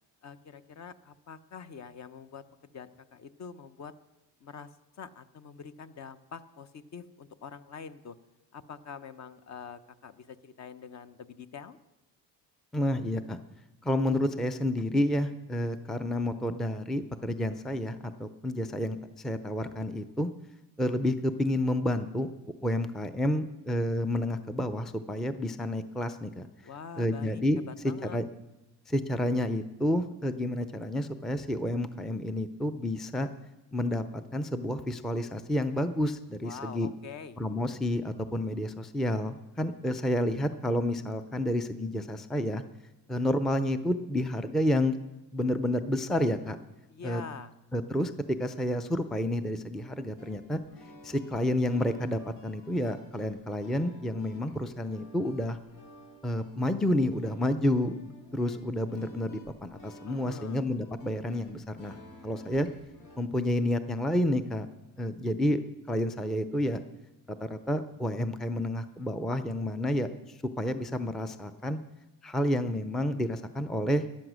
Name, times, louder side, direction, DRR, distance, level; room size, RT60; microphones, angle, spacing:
voice 1, 0.2-3.9 4.4-8.2 8.5-11.8 26.6-28.2 36.4-37.4 46.9-47.5 60.0-60.6, left 6 dB, 40° left, 12 dB, 0.8 m, -45 dB
voice 2, 12.7-13.4 13.8-20.3 20.8-22.3 22.6-26.5 27.0-27.6 28.1-28.2 28.9-33.3 33.7-36.9 37.4-42.6 43.1-45.0 45.3-46.6 47.0-47.2 47.7-48.1 48.4-50.6 51.0-55.6 56.2-62.0 62.2-62.7 63.2-64.7 65.0-65.6 65.9-66.8 67.4-71.8 72.2-74.0, left 1 dB, ahead, 10 dB, 0.5 m, -30 dB
sound 1, 49.7-63.2, left 1 dB, 85° left, 3.0 m, -53 dB
13.0 x 11.5 x 6.2 m, 1.0 s
cardioid pair, 125°, 40 cm